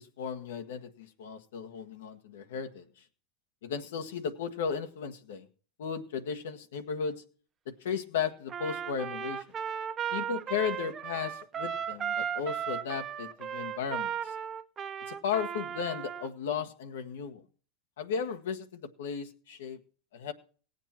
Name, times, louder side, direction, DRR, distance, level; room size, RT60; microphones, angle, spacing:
voice 1, 0.0-2.8 3.6-5.5 5.8-7.2 7.7-9.4 10.1-14.3 15.1-17.4 18.0-19.8 20.1-20.3, left 7 dB, 80° left, 6 dB, 1.4 m, -35 dB
Trumpet, 8.5-16.3, right 8 dB, 35° right, 0.7 m, -36 dB
17.5 x 8.1 x 4.4 m, 0.41 s
hypercardioid pair, 100°, 0 cm